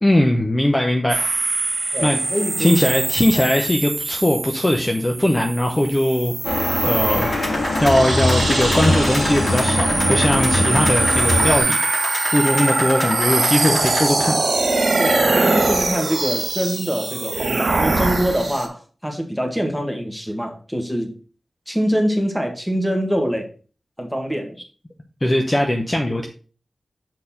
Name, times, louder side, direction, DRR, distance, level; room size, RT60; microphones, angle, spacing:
voice 1, 0.0-1.3 2.0-2.2 2.6-6.3 6.8-11.8 12.3-14.4 25.2-26.3, left 1 dB, 20° left, 0.8 m, -20 dB
sound 1, 1.1-18.7, right 3 dB, 70° right, 1.9 m, -23 dB
voice 2, 1.9-2.8 15.0-21.1 21.7-23.5 24.0-24.6, equal, ahead, 1.7 m, -24 dB
sound 2, 6.4-11.6, left 1 dB, 90° left, 3.0 m, -22 dB
sound 3, 7.2-14.1, left 1 dB, 50° left, 2.4 m, -29 dB
6.6 x 4.2 x 5.6 m
wide cardioid pair, 95°, 0 cm